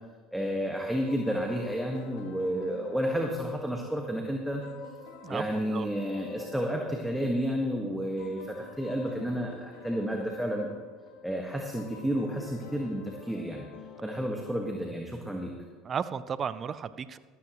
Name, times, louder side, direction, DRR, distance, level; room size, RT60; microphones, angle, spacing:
voice 1, 0.3-4.6 5.3-10.7 11.2-13.7 14.0-15.5, equal, 5° right, 1 dB, 1.5 m, -31 dB
sound 1, 1.1-15.3, left 4 dB, 75° left, 1.7 m, -49 dB
voice 2, 5.2-5.9 15.8-17.2, right 7 dB, 40° right, 15 dB, 0.6 m, -34 dB
14.0 x 13.0 x 3.1 m, 1.5 s
hypercardioid pair, 75°, 0 cm